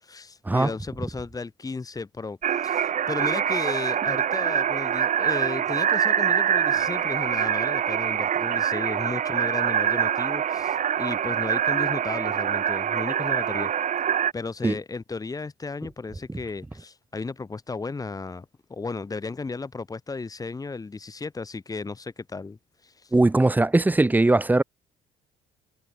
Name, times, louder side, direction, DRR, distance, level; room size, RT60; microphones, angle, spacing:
voice 1, 0.0-13.7 14.3-23.1, left 4 dB, 20° left, 3.6 m, -34 dB
sound 1, 2.4-14.3, right 9 dB, 45° right, 2.2 m, -25 dB
voice 2, 23.1-24.6, right 2 dB, 10° right, 1.0 m, -20 dB
cardioid pair, 110°, 17 cm